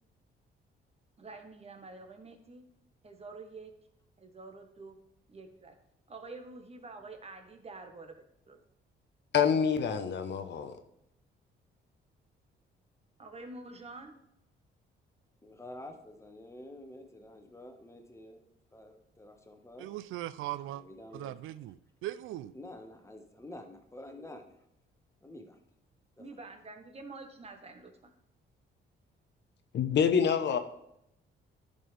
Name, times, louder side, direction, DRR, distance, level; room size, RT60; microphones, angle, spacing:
voice 1, 1.2-2.6 3.0-3.7 4.2-5.0 5.3-5.7 6.1-8.1 8.5-8.6 13.2-14.1 26.2-28.1, right 3 dB, 30° right, 1.4 m, -47 dB
voice 2, 9.3-10.8 29.7-30.6, left 7 dB, 60° left, 0.9 m, -26 dB
voice 3, 15.4-18.4 18.7-19.9 20.7-21.3 22.5-24.5 25.2-25.6 26.2-26.3, left 1 dB, 15° left, 1.4 m, -48 dB
voice 4, 19.8-20.8 21.1-22.5, right 14 dB, 85° right, 0.4 m, -39 dB
11.0 x 5.3 x 3.4 m
cardioid pair, 90°, 20 cm